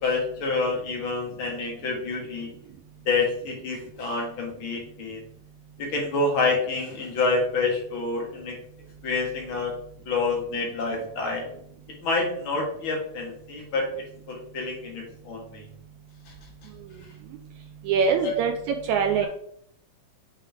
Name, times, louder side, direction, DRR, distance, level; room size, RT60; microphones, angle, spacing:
voice 1, 0.0-2.5 3.1-5.2 5.8-8.5 9.0-9.7 10.1-11.4 12.0-13.8 14.3-15.6 18.2-18.3, left 3 dB, 45° left, 0 dB, 2.0 m, -27 dB
voice 2, 17.8-19.3, right 6 dB, 80° right, 4 dB, 1.7 m, -23 dB
6.9 x 3.7 x 4.6 m, 0.68 s
omnidirectional pair, 3.8 m